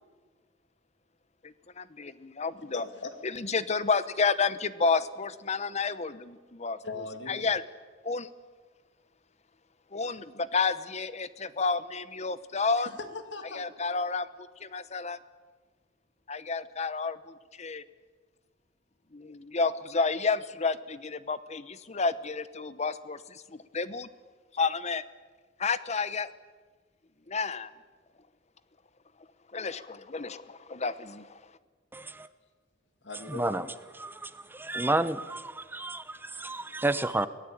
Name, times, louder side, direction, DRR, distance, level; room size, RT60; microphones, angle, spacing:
voice 1, 1.4-2.8 3.3-6.8 7.3-7.6 8.0-8.3 9.9-12.9 13.5-15.2 16.3-17.8 19.1-24.1 24.5-25.0 25.6-26.3 27.3-27.7 29.5-31.4, left 4 dB, 40° left, 1.0 m, -30 dB
voice 2, 2.7-3.2 6.8-7.5 12.8-13.7 33.0-33.7, left 3 dB, 70° left, 2.5 m, -40 dB
voice 3, 31.9-32.3 33.3-33.7 34.0-37.3, right 2 dB, 10° right, 0.8 m, -31 dB
23.5 x 18.5 x 8.8 m
head